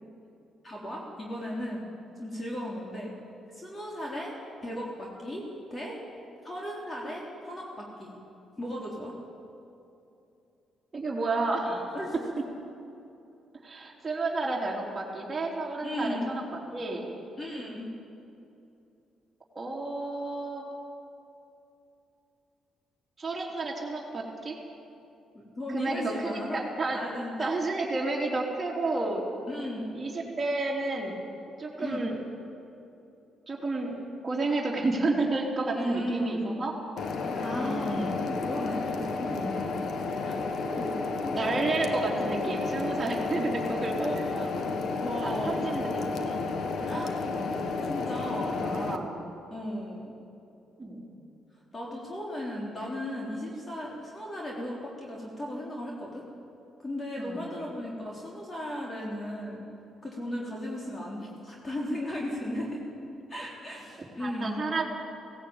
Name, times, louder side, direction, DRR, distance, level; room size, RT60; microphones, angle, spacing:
voice 1, 0.6-1.8 2.2-3.1 3.5-4.3 4.6-6.0 6.4-8.1 8.6-9.1 11.9-12.1 15.8-16.3 17.4-17.9 25.6-26.6 26.9-27.5 29.5-29.9 31.8-32.0 35.7-36.5 37.4-39.4 40.2-41.7 44.0-44.2 45.0-45.7 46.8-47.1 47.9-48.6 49.5-50.2 51.7-56.2 56.8-59.6 60.0-62.8 63.3-64.6, left 1 dB, 30° left, -3 dB, 3.7 m, -36 dB
voice 2, 10.9-12.0 13.6-16.4 16.7-17.1 19.6-20.6 23.2-24.6 25.7-27.1 27.4-29.2 29.9-31.2 31.6-32.2 33.5-33.9 34.2-36.7 37.2-38.1 39.3-39.8 41.3-44.6 45.2-47.0 47.3-49.2 50.8-51.0 57.2-57.6 64.2-64.8, right 2 dB, 25° right, -4 dB, 3.7 m, -31 dB
sound 1, 37.0-49.0, left 4 dB, 65° left, 1.5 m, -32 dB
17.0 x 17.0 x 9.0 m, 2.7 s
cardioid pair, 90°, 0 cm